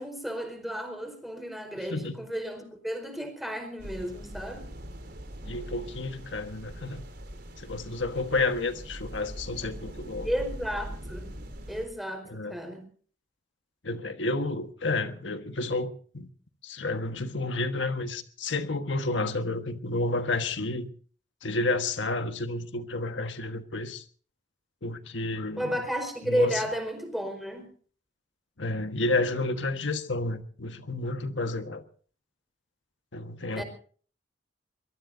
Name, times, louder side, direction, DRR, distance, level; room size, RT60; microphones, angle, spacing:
voice 1, 0.0-4.6 10.2-11.3 11.7-12.8 25.6-27.7 33.5-33.6, equal, ahead, 4.7 m, -32 dB
sound 1, 3.8-11.9, equal, 60° right, 4.4 m, -42 dB
voice 2, 5.4-7.0 7.6-10.3 12.3-12.5 13.8-16.3 16.6-20.9 21.4-24.0 24.8-25.8 26.2-26.6 28.6-31.8 33.1-33.6, left 2 dB, 90° left, 1.5 m, -30 dB
23.5 x 22.0 x 2.7 m
head